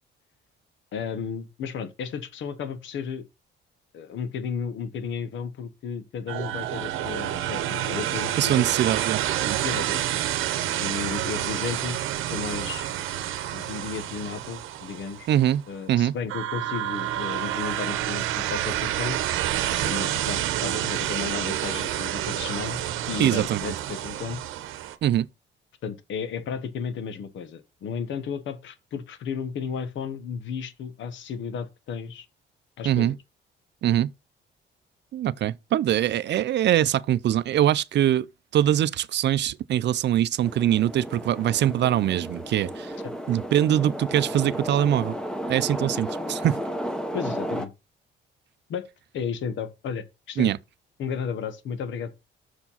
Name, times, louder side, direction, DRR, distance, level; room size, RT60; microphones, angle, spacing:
voice 1, 0.9-3.3 3.9-8.7 9.6-10.1 10.8-12.9 13.5-15.3 15.7-19.2 19.8-24.4 25.8-32.3 32.8-33.1 47.1-47.7 48.7-48.9 49.1-50.5 51.0-52.2, left 6 dB, 75° left, 1.2 m, -33 dB
sound 1, 6.3-15.5 16.3-25.0, right 12 dB, 90° right, 0.8 m, -29 dB
voice 2, 8.4-9.6 15.3-15.6 15.9-16.2 19.8-19.9 23.2-23.7 25.0-25.3 32.8-33.2 33.8-34.1 35.1-38.3 38.5-43.0 43.3-45.2 45.5-46.6 50.4-50.6, right 11 dB, 60° right, 0.5 m, -23 dB
sound 2, 40.4-47.7, equal, 5° left, 1.2 m, -33 dB
6.8 x 4.6 x 5.6 m
cardioid pair, 90°, 20 cm